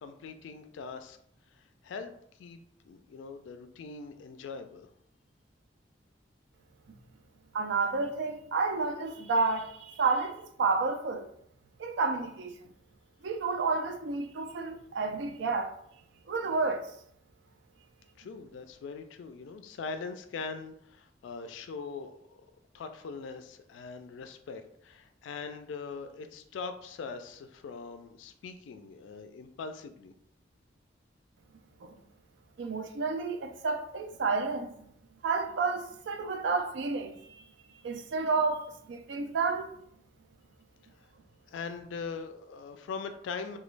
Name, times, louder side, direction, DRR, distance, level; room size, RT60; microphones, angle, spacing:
voice 1, 0.0-1.2 1.5-2.1 2.4-2.6 2.8-4.9 18.2-22.1 22.7-30.1 41.5-43.6, left 5 dB, 85° left, 0.3 m, -41 dB
voice 2, 7.5-11.3 11.8-12.5 13.2-15.7 16.3-16.9 31.8-32.0 32.6-34.7 35.2-37.4 37.8-39.7, right 4 dB, 70° right, 0.4 m, -30 dB
2.9 x 2.2 x 3.2 m
head